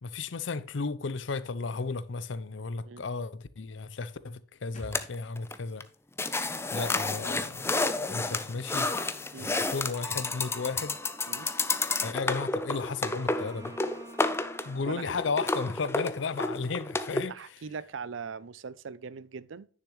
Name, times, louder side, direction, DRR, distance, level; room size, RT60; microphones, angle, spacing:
voice 1, 0.0-5.8 6.7-7.7 8.1-9.0 9.4-11.0 12.0-13.7 14.6-17.3, left 4 dB, 75° left, 0.6 m, -34 dB
sound 1, 4.7-8.3 8.5-8.6, equal, 35° left, 3.0 m, -53 dB
sound 2, 4.9-5.6 5.8-5.9 6.2-17.2, left 3 dB, 15° left, 0.5 m, -31 dB
Bowed string instrument, 13.1-16.9, right 1 dB, 15° right, 1.0 m, -52 dB
voice 2, 17.3-19.7, right 5 dB, 85° right, 0.5 m, -41 dB
10.0 x 6.6 x 3.1 m
head